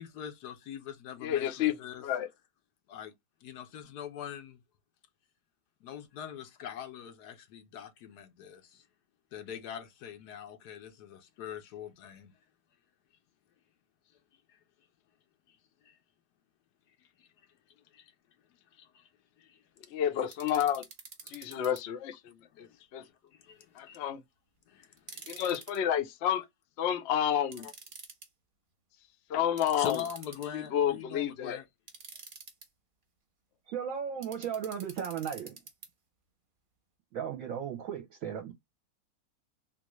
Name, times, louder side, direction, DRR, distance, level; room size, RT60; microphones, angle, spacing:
voice 1, 0.0-2.0 2.9-3.1 3.4-4.6 5.8-8.8 9.3-12.3 14.5-14.6 15.5-15.6 15.8-16.0 17.2-17.3 17.9-18.1 18.7-19.1 19.4-19.6 20.2-20.3 21.2-21.6 22.5-22.8 23.0-24.0 24.7-25.5 27.6-27.7 29.7-31.7, left 9 dB, 85° left, 1.2 m, -43 dB
voice 2, 1.2-1.7 2.0-2.3 19.9-20.8 21.3-22.7 22.9-23.0 23.8-24.2 25.3-26.4 26.8-27.7 29.3-30.0 30.5-31.6, left 10 dB, 65° left, 0.7 m, -30 dB
sound 1, 20.3-21.8 25.0-25.8 27.5-28.3 29.6-30.7 31.9-32.7 34.2-35.9, right 4 dB, 40° right, 0.9 m, -48 dB
voice 3, 33.7-35.6 37.1-38.5, right 8 dB, 65° right, 1.0 m, -36 dB
3.6 x 2.4 x 3.0 m
omnidirectional pair, 1.7 m